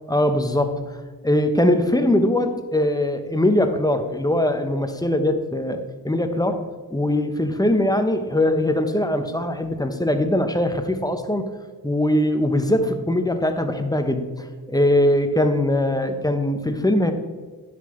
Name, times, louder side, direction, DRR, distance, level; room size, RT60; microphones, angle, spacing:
voice 1, 0.1-0.8 1.2-6.6 6.9-11.4 11.8-17.1, left 1 dB, 10° left, 7 dB, 0.9 m, -21 dB
10.0 x 5.9 x 3.1 m, 1.4 s
cardioid pair, 60°, 39 cm